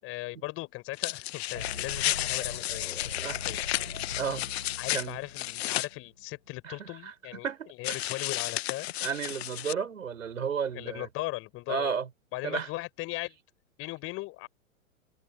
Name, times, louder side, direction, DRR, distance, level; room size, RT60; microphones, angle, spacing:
voice 1, 0.0-3.6 4.8-7.5 7.8-8.9 10.7-11.9 12.3-13.4 13.8-14.5, left 20 dB, 35° left, 4.5 m, -38 dB
sound 1, 0.9-5.9 7.8-9.7, left 15 dB, 50° left, 1.0 m, -32 dB
sound 2, 1.5-6.5, left 3 dB, 90° left, 5.1 m, -43 dB
voice 2, 4.2-4.5 4.9-5.2 6.6-8.0 9.0-11.1 11.7-12.1 12.4-12.7, right 6 dB, 75° right, 5.6 m, -33 dB
figure-of-eight pair, 110°, 40 cm